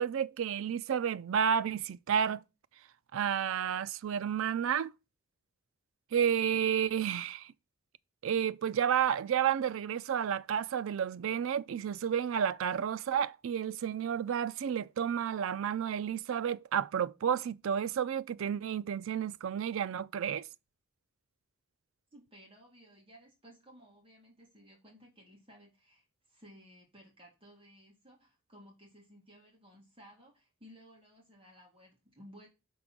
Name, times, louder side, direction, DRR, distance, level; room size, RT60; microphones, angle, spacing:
voice 1, 0.0-2.4 3.1-4.9 6.1-7.5 8.2-20.5, right 8 dB, 60° right, 0.3 m, -31 dB
voice 2, 22.1-32.5, equal, 25° right, 1.7 m, -57 dB
5.8 x 3.8 x 6.0 m
head